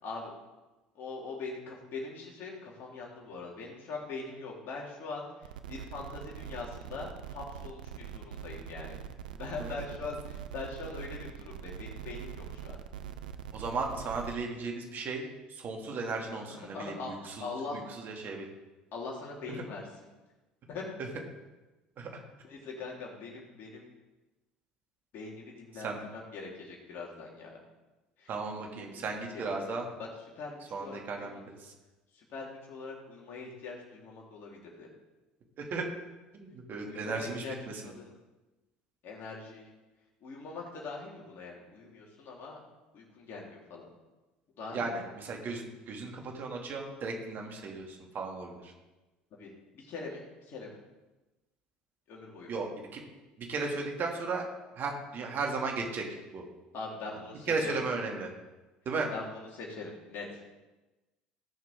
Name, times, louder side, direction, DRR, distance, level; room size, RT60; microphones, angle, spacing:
voice 1, 0.0-0.3 1.0-9.0 9.4-12.8 16.5-17.1 17.4-17.8 18.9-19.9 20.7-20.9 22.4-23.9 25.1-27.6 28.2-29.0 29.3-29.6 30.0-30.1 30.4-31.4 32.1-34.9 36.8-38.1 39.0-39.7 40.2-42.6 42.9-43.9 44.6-44.9 49.3-50.8 52.1-52.6 56.7-57.7 59.1-60.5, left 4 dB, 55° left, -3 dB, 3.9 m, -42 dB
sound 1, 5.4-14.4, right 8 dB, 85° right, 0.7 m, -43 dB
voice 2, 13.5-15.2 15.5-18.5 22.0-22.1 25.8-26.0 28.3-29.9 30.7-31.7 35.7-35.8 36.3-37.4 44.7-48.7 52.5-53.0 53.4-54.5 54.8-56.0 56.3-56.4 57.5-58.3 58.9-59.1, right 4 dB, 50° right, 1 dB, 2.7 m, -35 dB
18.5 x 6.5 x 3.8 m, 1.1 s
hypercardioid pair, 70°, 4 cm